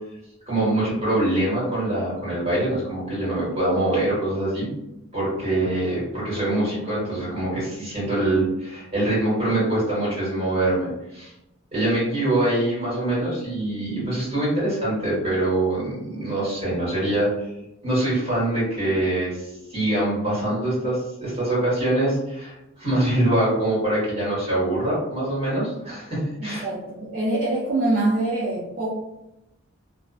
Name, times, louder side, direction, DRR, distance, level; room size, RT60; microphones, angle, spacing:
voice 1, 0.4-4.7 5.1-11.3 11.7-17.3 17.8-26.6, right 1 dB, 30° right, -9 dB, 1.4 m, -24 dB
voice 2, 26.4-28.9, right 2 dB, 45° right, -9 dB, 0.6 m, -24 dB
2.4 x 2.3 x 2.3 m, 0.89 s
head